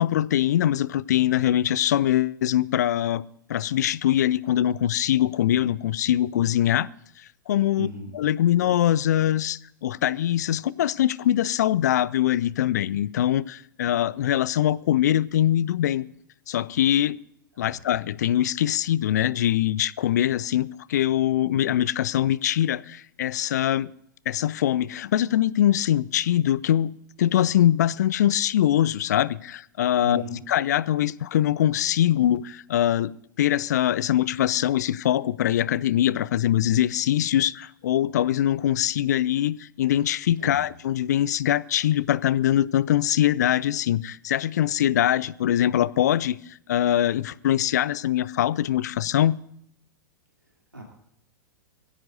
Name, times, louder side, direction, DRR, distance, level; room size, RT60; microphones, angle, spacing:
voice 1, 0.0-3.2 3.5-6.9 7.2-7.9 8.1-16.0 16.5-17.2 17.6-23.9 24.3-30.2 30.5-49.4, left 11 dB, 55° left, 0.5 m, -23 dB
voice 2, 7.8-8.1 17.5-17.8 30.0-30.4 40.4-40.7 50.7-50.8, left 2 dB, 90° right, 2.9 m, -34 dB
23.0 x 16.0 x 2.6 m
figure-of-eight pair, 100°, 11 cm